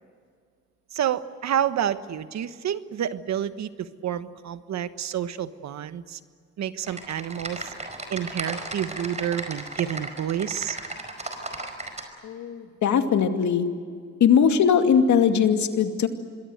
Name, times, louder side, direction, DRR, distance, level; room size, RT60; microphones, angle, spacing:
voice 1, 0.9-6.2 6.6-7.7 8.1-10.8, right 10 dB, 65° right, 12 dB, 1.3 m, -29 dB
Typing, 6.8-12.1, right 2 dB, 25° right, 5.0 m, -35 dB
voice 2, 12.2-13.7 14.2-16.1, left 7 dB, 70° left, 6 dB, 2.4 m, -20 dB
26.5 x 22.0 x 7.9 m, 2.1 s
cardioid pair, 90°, 30 cm